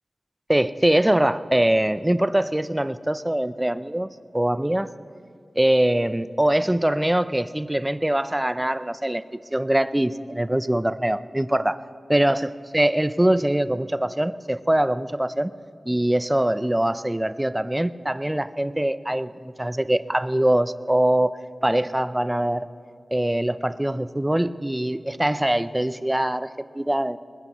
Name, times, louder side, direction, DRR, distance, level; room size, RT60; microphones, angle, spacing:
voice 1, 0.5-4.9 5.6-9.2 9.5-11.8 12.1-12.5 12.7-15.5 15.8-21.4 21.6-22.7 23.1-27.2, right 1 dB, 15° right, 14 dB, 0.5 m, -23 dB
21.5 x 20.0 x 3.1 m, 2.3 s
cardioid pair, 40°, 0 cm